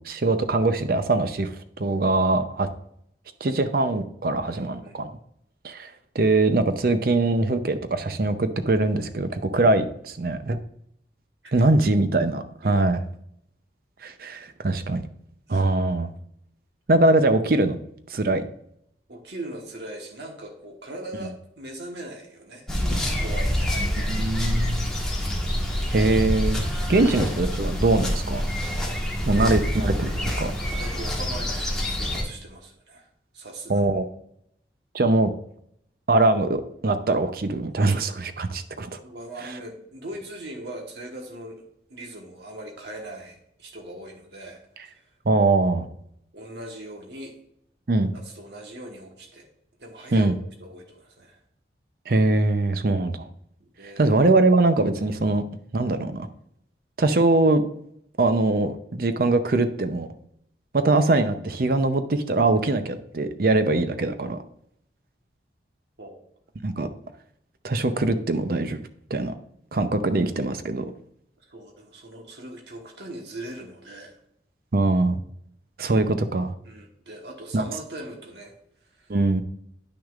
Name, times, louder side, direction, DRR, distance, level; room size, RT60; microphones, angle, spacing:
voice 1, 0.0-2.7 3.4-5.2 5.6-10.6 11.5-13.0 14.0-15.0 15.5-16.1 16.9-17.8 18.1-18.4 23.9-24.9 25.9-26.6 26.9-28.4 29.2-30.5 33.7-34.1 34.9-35.3 36.1-39.0 39.4-39.5 45.2-45.9 47.9-48.1 50.1-50.3 52.1-53.3 53.8-55.4 55.7-56.3 57.0-57.6 58.2-60.1 60.7-64.4 66.6-66.9 67.6-68.8 69.1-69.3 69.7-70.9 74.7-75.2 75.8-76.5 77.5-77.6 79.1-79.4, right 2 dB, 55° right, 10 dB, 0.6 m, -22 dB
voice 2, 4.5-5.0 11.4-11.7 12.6-12.8 15.5-15.6 19.1-24.1 26.9-27.1 29.2-29.5 30.0-33.1 33.3-33.9 37.8-38.0 38.5-45.1 46.3-47.3 48.1-49.5 49.8-50.3 50.6-51.4 53.8-54.1 66.0-66.2 71.5-74.2 76.6-78.5 79.0-79.2, right 1 dB, 70° right, 1 dB, 1.3 m, -40 dB
sound 1, 22.7-32.2, equal, 5° left, 1.3 m, -26 dB
10.0 x 6.2 x 2.4 m, 0.72 s
head